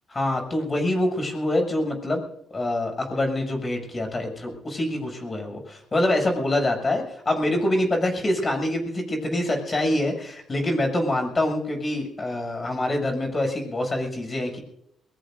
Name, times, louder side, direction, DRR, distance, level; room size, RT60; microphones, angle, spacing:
voice 1, 0.1-2.2 2.5-14.6, left 1 dB, 30° left, 2 dB, 7.5 m, -25 dB
23.0 x 22.5 x 2.7 m, 0.75 s
cardioid pair, 90°, 0 cm